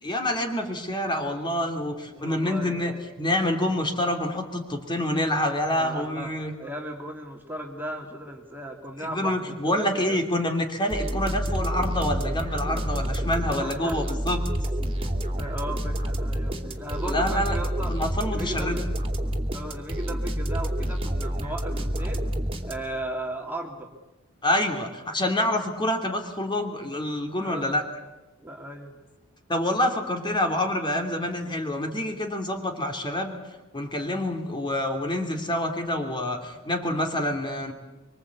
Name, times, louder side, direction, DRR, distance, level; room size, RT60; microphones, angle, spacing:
voice 1, 0.0-6.5 9.0-14.4 17.0-17.5 17.9-18.8 24.4-27.8 29.5-33.3 33.7-37.7, left 1 dB, 20° left, 4 dB, 2.9 m, -27 dB
voice 2, 2.1-3.0 5.7-6.3 6.6-9.8 10.1-10.2 13.5-13.9 14.9-17.9 18.3-18.8 19.5-22.2 22.6-23.9 27.4-27.8 28.4-29.0, right 1 dB, 10° right, 1 dB, 2.4 m, -36 dB
sound 1, 10.9-23.1, equal, 25° right, 2.7 m, -29 dB
25.0 x 25.0 x 8.3 m, 1.0 s
head